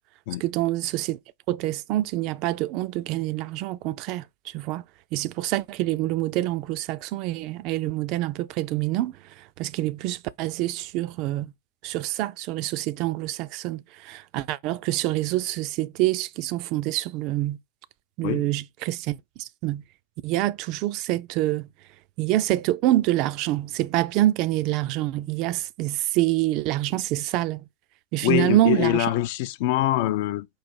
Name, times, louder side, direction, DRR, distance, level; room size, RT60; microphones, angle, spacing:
voice 1, 0.4-1.2 1.5-4.8 5.1-11.5 11.8-17.6 18.2-19.8 20.2-21.7 22.2-27.7 28.1-29.1, right 15 dB, 40° right, 0.3 m, -26 dB
voice 2, 28.2-30.5, left 14 dB, 50° left, 0.4 m, -24 dB
4.7 x 2.6 x 4.2 m
figure-of-eight pair, 90°, 0 cm